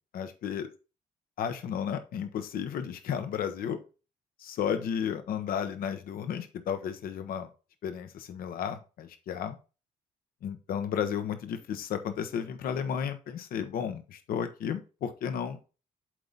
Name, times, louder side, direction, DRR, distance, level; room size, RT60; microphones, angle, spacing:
voice 1, 0.1-0.7 1.4-3.8 4.4-7.5 7.8-9.6 10.4-15.6, left 8 dB, 75° left, 9 dB, 0.9 m, -33 dB
7.7 x 4.0 x 3.9 m, 0.33 s
supercardioid pair, 60°, 15 cm